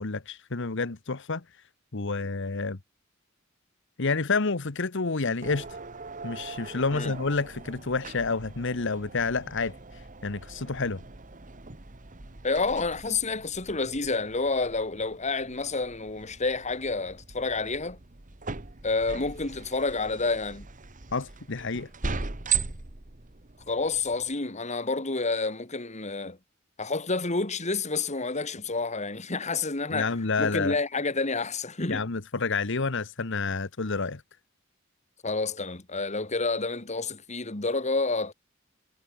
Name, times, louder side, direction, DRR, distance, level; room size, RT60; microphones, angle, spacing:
voice 1, 0.0-1.4 1.9-2.8 4.0-5.8 6.2-11.0 21.1-21.9 29.9-30.8 31.9-34.2, left 4 dB, 65° left, 1.2 m, -29 dB
sound 1, 5.4-24.3, right 5 dB, 40° right, 1.7 m, -39 dB
voice 2, 12.4-18.0 18.8-20.7 23.7-26.4 26.8-32.0 35.2-38.3, left 3 dB, 35° left, 2.3 m, -29 dB
head